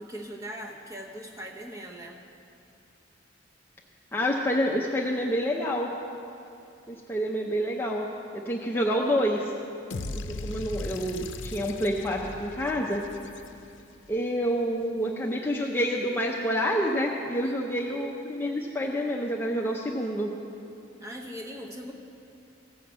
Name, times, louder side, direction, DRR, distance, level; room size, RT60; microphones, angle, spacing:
voice 1, 0.0-2.2 17.4-17.5 21.0-21.9, equal, 15° right, -1 dB, 1.0 m, -40 dB
voice 2, 4.1-5.9 6.9-8.1 8.3-9.5 10.1-13.0 14.1-20.3, equal, 10° left, -2 dB, 0.6 m, -28 dB
sound 1, 9.9-14.0, left 2 dB, 75° left, 0.6 m, -38 dB
16.0 x 5.7 x 7.4 m, 2.7 s
head